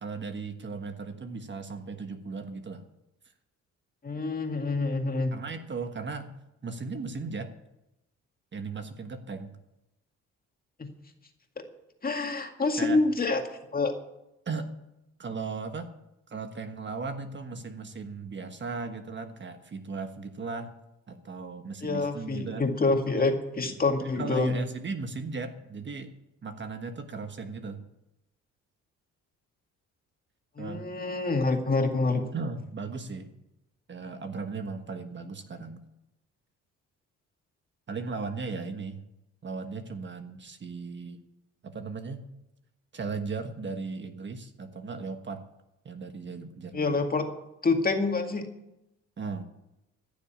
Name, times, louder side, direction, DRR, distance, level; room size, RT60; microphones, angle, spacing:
voice 1, 0.0-2.8 5.3-6.3 6.6-7.5 8.5-9.6 12.8-13.0 14.4-14.7 15.2-15.9 16.3-20.7 21.1-22.7 23.2-23.3 23.6-26.1 26.4-27.8 30.6-30.9 32.3-33.3 33.9-35.8 37.9-39.0 39.4-41.2 41.6-42.3 42.9-45.4 45.8-47.0 49.2-49.4, right 4 dB, 40° right, 7 dB, 1.4 m, -37 dB
voice 2, 4.0-5.3 10.8-10.9 12.0-13.4 13.7-13.9 21.8-24.6 30.6-32.3 46.7-47.3 47.6-48.5, left 3 dB, 30° left, 4 dB, 2.1 m, -27 dB
15.0 x 7.2 x 8.9 m, 0.89 s
cardioid pair, 90°, 30 cm